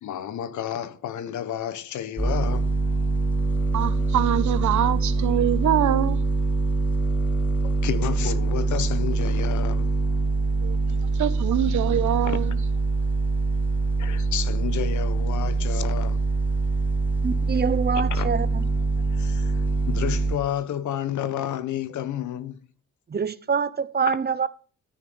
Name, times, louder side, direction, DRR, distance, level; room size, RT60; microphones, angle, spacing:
voice 1, 0.0-2.7 7.6-10.0 12.2-12.4 14.0-16.2 18.1-18.3 19.1-22.6, left 10 dB, 75° left, 1.4 m, -31 dB
sound 1, 2.2-20.4, right 3 dB, 5° left, 3.3 m, -24 dB
voice 2, 3.7-6.2 10.6-10.8 11.1-12.5, right 11 dB, 70° right, 1.2 m, -24 dB
voice 3, 17.2-18.6 23.1-24.5, right 6 dB, 35° right, 0.9 m, -25 dB
13.5 x 6.5 x 7.2 m
cardioid pair, 90°, 30 cm